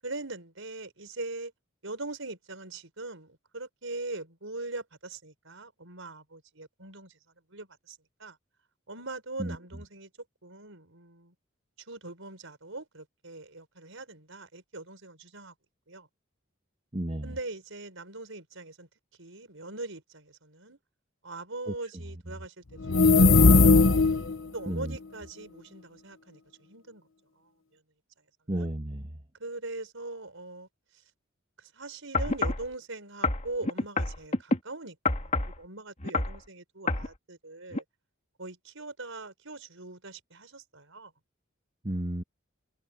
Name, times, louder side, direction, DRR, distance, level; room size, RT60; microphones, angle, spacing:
voice 1, 0.0-1.5 1.8-7.2 7.5-8.4 8.9-10.1 10.4-11.3 11.9-15.5 15.9-16.1 17.2-18.9 19.2-20.8 21.2-24.0 24.5-27.1 28.5-28.7 29.4-30.7 31.6-37.8 38.4-41.1, right 2 dB, 70° right, 7.1 m, -41 dB
voice 2, 16.9-17.3 21.7-21.8 24.7-25.0 28.5-29.0 41.8-42.2, right 1 dB, 30° right, 1.4 m, -32 dB
sound 1, 22.8-24.4, left 3 dB, 70° left, 1.2 m, -18 dB
sound 2, 32.1-32.7 33.2-34.6 35.0-35.6 36.0-36.4 36.9-37.1 37.7-37.8, left 3 dB, 35° left, 2.3 m, -27 dB
head